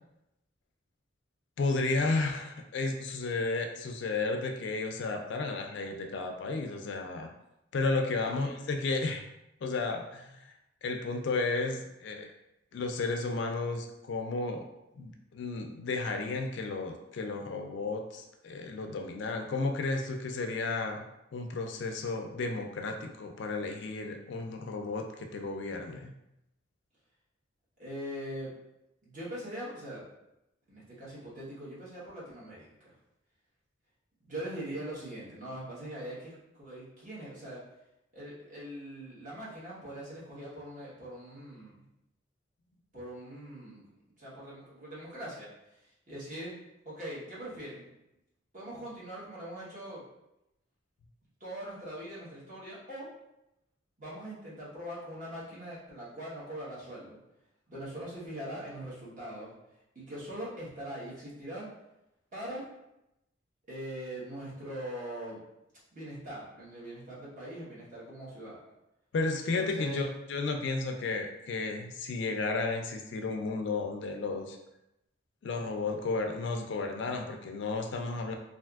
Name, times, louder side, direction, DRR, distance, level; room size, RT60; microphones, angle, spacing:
voice 1, 1.6-7.3 7.7-9.2 9.6-10.5 10.8-12.3 12.7-14.7 14.9-21.0 21.3-26.1 69.1-74.6 75.4-78.4, left 3 dB, 60° left, 4 dB, 0.3 m, -33 dB
voice 2, 27.8-28.5 29.0-30.0 30.7-32.9 34.2-37.6 38.1-41.8 42.9-43.9 44.2-45.5 45.8-46.6 46.8-47.9 48.5-50.0 51.4-53.1 54.0-57.2 57.7-59.5 59.9-61.7 62.3-62.7 63.7-65.4 65.9-68.6 69.5-70.1, right 1 dB, 40° right, -8 dB, 1.1 m, -42 dB
3.3 x 2.5 x 2.3 m, 0.88 s
head